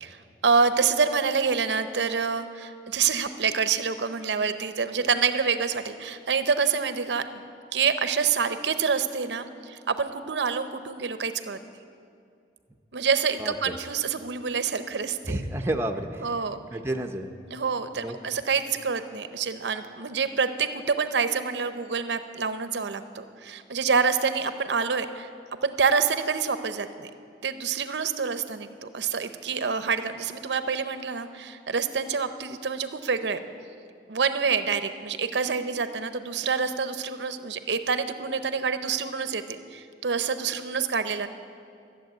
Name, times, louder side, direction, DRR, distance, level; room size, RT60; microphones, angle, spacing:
voice 1, 0.0-7.2 7.7-11.6 12.9-15.4 16.2-16.6 17.5-25.3 25.6-27.1 27.4-33.4 34.1-41.3, right 5 dB, 80° right, 10 dB, 0.7 m, -27 dB
voice 2, 13.4-13.7 15.3-16.4 16.7-17.3 17.9-18.2, right 1 dB, 15° right, 4 dB, 0.6 m, -30 dB
13.5 x 7.4 x 9.1 m, 2.4 s
head